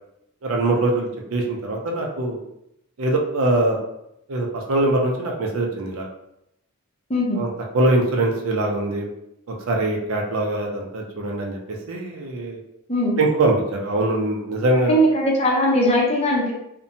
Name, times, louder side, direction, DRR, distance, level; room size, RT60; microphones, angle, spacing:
voice 1, 0.4-2.4 3.0-3.8 4.3-6.1 7.3-9.1 9.5-12.6 13.2-14.9, right 2 dB, 75° right, 0 dB, 0.5 m, -22 dB
voice 2, 7.1-7.4 12.9-13.2 14.7-16.5, equal, 30° left, -2 dB, 0.5 m, -20 dB
2.7 x 2.1 x 2.6 m, 0.81 s
head